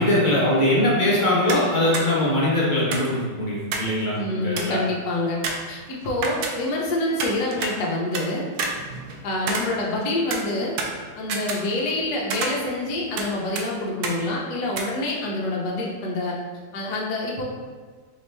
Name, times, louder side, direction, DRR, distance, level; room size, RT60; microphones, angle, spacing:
voice 1, 0.0-4.8, left 1 dB, 35° left, -6 dB, 0.9 m, -21 dB
sound 1, 1.5-1.7 1.9-2.1 2.9-4.0 4.2-4.3 4.6-4.9 5.4-6.9 7.2-8.3 8.6-10.0 10.3-12.0 12.3-13.3 13.6-13.7 14.0-14.2 14.7-14.8, right 4 dB, 70° right, 1.0 m, -29 dB
voice 2, 4.2-5.4 5.7-8.5 9.2-10.8 11.2-16.4 16.7-17.4, left 2 dB, 70° left, -3 dB, 1.2 m, -26 dB
4.3 x 2.8 x 3.2 m, 1.5 s
omnidirectional pair, 1.9 m